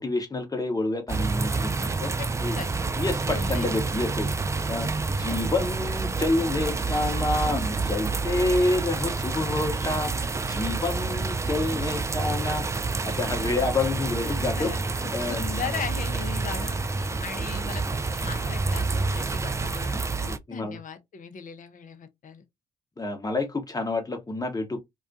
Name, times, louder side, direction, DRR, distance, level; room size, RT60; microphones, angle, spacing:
voice 1, 0.0-2.1 2.4-2.5 3.0-4.3 4.7-4.9 5.2-12.7 13.0-14.7 15.1-15.4 17.1-17.2 20.2-20.8 23.0-24.8, left 2 dB, 20° left, 0.9 m, -28 dB
sound 1, 1.1-20.4, right 3 dB, 15° right, 0.3 m, -28 dB
voice 2, 3.3-3.7 14.2-17.8 18.1-22.4, left 7 dB, 50° left, 0.7 m, -38 dB
2.3 x 2.2 x 2.5 m
hypercardioid pair, 45°, 18 cm